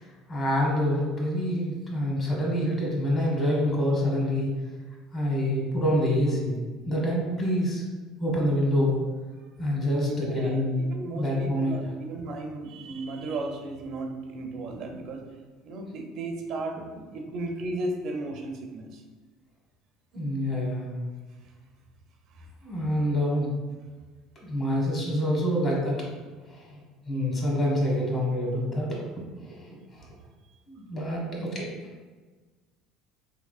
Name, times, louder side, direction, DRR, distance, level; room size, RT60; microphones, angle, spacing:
voice 1, 0.3-4.5 5.1-6.6 6.9-7.8 8.2-9.0 9.6-10.8 11.1-11.8 20.1-21.0 22.6-23.5 24.4-26.0 26.5-26.8 27.0-29.0 30.7-31.7, equal, 40° left, -2 dB, 1.4 m, -26 dB
voice 2, 10.1-10.6 10.9-15.2 15.6-19.0 22.3-22.5 30.0-30.1, right 2 dB, 60° right, 3 dB, 0.5 m, -35 dB
3.6 x 3.1 x 2.4 m, 1.3 s
supercardioid pair, 80°, 0 cm